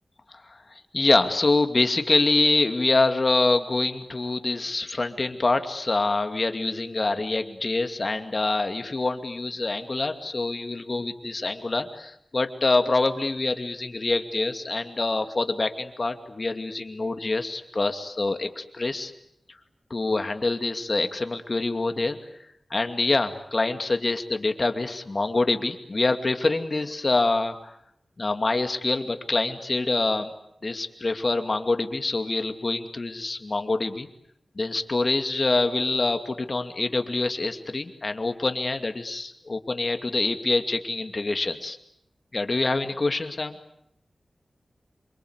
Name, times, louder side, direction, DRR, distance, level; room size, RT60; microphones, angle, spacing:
voice 1, 0.9-19.1 19.9-22.2 22.7-27.7 28.2-30.3 30.6-34.1 34.6-41.8 42.3-43.6, left 3 dB, 45° left, 7 dB, 2.5 m, -25 dB
28.0 x 24.0 x 8.2 m, 0.74 s
wide cardioid pair, 85°, 0 cm